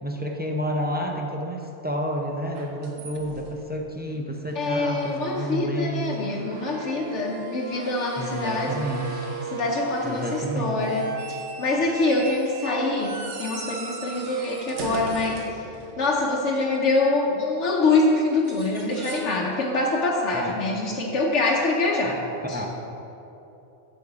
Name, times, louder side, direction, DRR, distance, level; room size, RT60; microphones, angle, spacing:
voice 1, 0.0-6.3 8.2-9.3 10.0-10.9 20.3-20.5 22.0-22.1 22.4-22.7, equal, 15° right, 0 dB, 0.4 m, -30 dB
sound 1, 2.5-3.8 4.5-4.6 4.9-5.7 6.0-16.3 18.3-19.4 19.7-20.0 21.8-21.9, right 3 dB, 90° right, 1.2 m, -37 dB
voice 2, 4.6-8.7 9.5-15.5 16.0-22.2 22.5-22.6, left 2 dB, 80° left, -2 dB, 1.1 m, -25 dB
8.5 x 7.0 x 4.8 m, 3.0 s
omnidirectional pair, 1.2 m